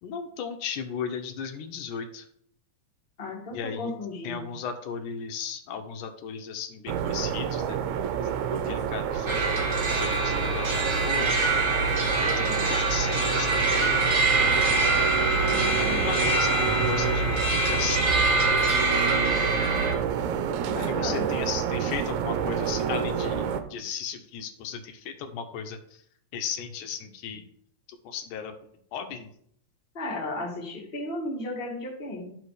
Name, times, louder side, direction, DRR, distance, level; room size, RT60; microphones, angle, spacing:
voice 1, 0.0-2.3 3.5-3.9 4.2-7.8 8.5-9.6 10.0-11.3 12.1-14.1 15.7-18.0 20.9-25.8 26.3-27.4 28.1-28.5 28.9-29.3, left 7 dB, 80° left, 6 dB, 2.4 m, -35 dB
voice 2, 3.2-4.5 15.5-16.2 20.7-21.4 29.9-32.3, left 2 dB, 20° left, -2 dB, 1.6 m, -35 dB
sound 1, 6.9-23.6, right 8 dB, 80° right, 2.0 m, -29 dB
sound 2, 9.3-19.9, right 2 dB, 45° right, 1.7 m, -25 dB
12.0 x 5.0 x 4.8 m, 0.66 s
omnidirectional pair, 3.5 m